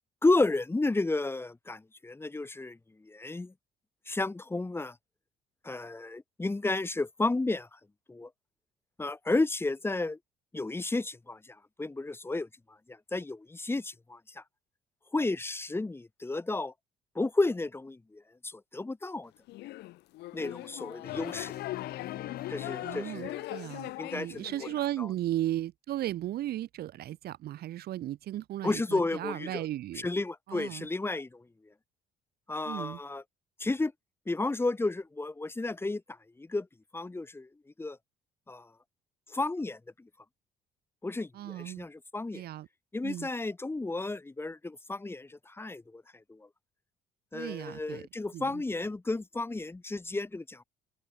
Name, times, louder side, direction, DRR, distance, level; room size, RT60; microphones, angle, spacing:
voice 1, 0.2-3.5 4.1-5.0 5.6-7.8 8.1-8.3 9.0-10.2 10.5-12.5 12.9-14.4 15.1-16.7 17.2-19.3 20.3-21.5 22.5-23.6 24.0-24.7 25.0-25.1 28.6-29.6 30.0-31.4 32.5-33.2 33.6-33.9 34.3-36.7 36.9-37.5 37.8-38.0 38.5-38.7 39.3-40.1 41.0-42.4 42.9-46.0 46.3-46.5 47.3-50.6, left 2 dB, 15° left, 1.9 m, -32 dB
sound 1, 19.5-24.8, left 18 dB, 80° left, 2.1 m, -40 dB
sound 2, 21.0-23.7, left 12 dB, 65° left, 3.0 m, -43 dB
voice 2, 22.8-30.1 30.5-30.9 32.6-33.0 41.3-41.9 42.3-42.7 43.0-43.3 47.3-48.0 48.3-48.6, right 13 dB, 70° right, 3.0 m, -36 dB
open air
cardioid pair, 110°, 17 cm